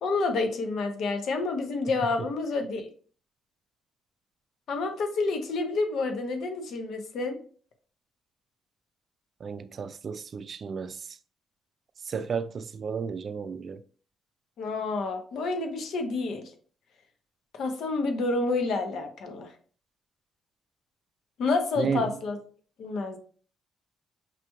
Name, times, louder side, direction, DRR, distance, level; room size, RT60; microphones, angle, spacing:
voice 1, 0.0-2.9 4.7-7.4 14.6-16.4 17.5-19.5 21.4-22.4 22.8-23.2, left 3 dB, 70° left, 0.9 m, -29 dB
voice 2, 9.4-11.2 12.0-13.8 21.8-22.2, right 6 dB, 50° right, 0.3 m, -33 dB
5.8 x 3.0 x 2.3 m
cardioid pair, 90°, 0 cm